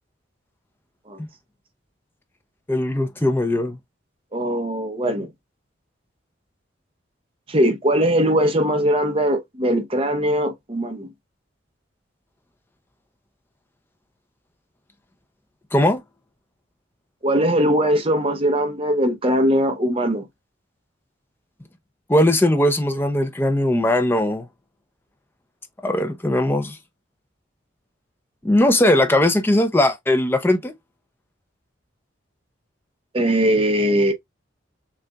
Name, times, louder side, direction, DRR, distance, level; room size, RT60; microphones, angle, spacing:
voice 1, 2.7-3.8 15.7-16.0 22.1-24.4 25.8-26.8 28.4-30.7, left 1 dB, 10° left, 0.5 m, -19 dB
voice 2, 4.3-5.3 7.5-11.1 17.2-20.3 33.1-34.1, equal, 30° right, 0.8 m, -20 dB
6.5 x 2.4 x 2.3 m
head